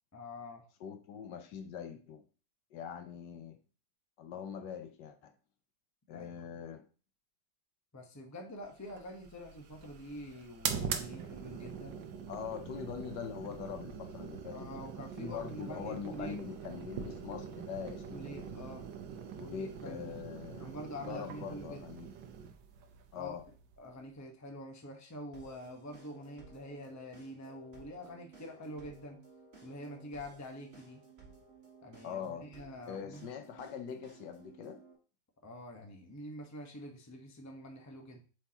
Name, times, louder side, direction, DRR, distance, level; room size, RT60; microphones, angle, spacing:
voice 1, 0.1-0.6 6.1-6.4 7.9-12.0 14.5-16.4 18.1-18.9 19.5-20.2 20.6-21.8 23.1-23.4 23.8-29.2 29.6-31.0 31.8-33.2 35.4-38.2, equal, 15° left, 2 dB, 0.8 m, -46 dB
voice 2, 0.8-2.2 2.7-3.6 4.2-5.3 6.1-6.8 12.3-14.7 15.2-18.6 19.4-20.7 21.1-22.1 23.1-23.4 32.0-32.5 32.9-34.8, left 7 dB, 70° left, 8 dB, 1.3 m, -43 dB
sound 1, 8.8-24.1, right 7 dB, 75° right, 1.4 m, -43 dB
sound 2, 25.3-34.9, right 4 dB, 35° right, 1.7 m, -57 dB
7.9 x 4.7 x 2.9 m, 0.37 s
omnidirectional pair, 2.0 m